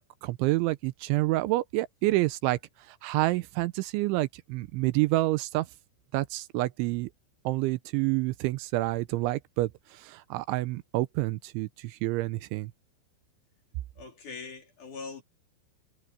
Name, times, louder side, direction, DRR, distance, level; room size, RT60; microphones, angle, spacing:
voice 1, 0.0-2.6 2.9-5.7 6.1-7.1 7.4-12.7, right 19 dB, 85° right, 3.0 m, -28 dB
voice 2, 14.0-15.2, left 4 dB, 45° left, 4.5 m, -42 dB
omnidirectional pair, 5.6 m